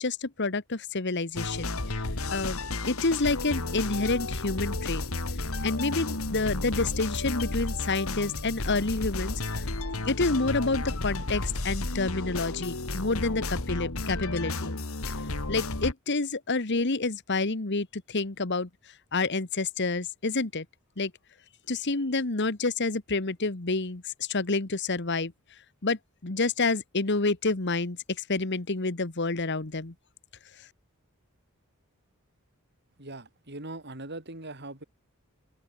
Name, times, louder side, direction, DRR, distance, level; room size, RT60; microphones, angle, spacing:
voice 1, 0.0-2.6 2.9-5.0 5.6-9.7 10.1-14.7 15.1-15.2 15.5-18.7 19.1-20.6 21.0-21.1 21.7-24.0 24.3-25.3 25.8-28.0 28.3-29.9, left 3 dB, 55° left, 1.5 m, -28 dB
sound 1, 1.3-15.9, left 2 dB, 85° left, 2.3 m, -32 dB
voice 2, 33.0-34.8, right 2 dB, 55° right, 6.0 m, -40 dB
open air
head